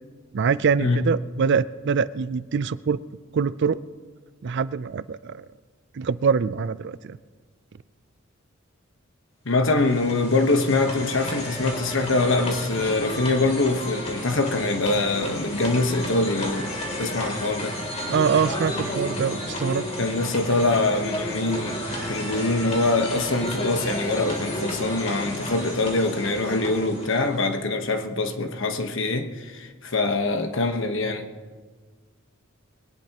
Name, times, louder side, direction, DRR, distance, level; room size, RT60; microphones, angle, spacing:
voice 1, 0.3-3.0 3.3-3.8 4.4-5.5 5.9-7.2 18.1-19.8, right 6 dB, 60° right, 16 dB, 0.4 m, -24 dB
voice 2, 9.4-16.7 17.0-17.8 20.0-31.3, left 2 dB, 65° left, 6 dB, 1.2 m, -24 dB
sound 1, 9.5-27.6, left 1 dB, 35° left, 3.1 m, -32 dB
21.5 x 18.5 x 3.0 m, 1.5 s
head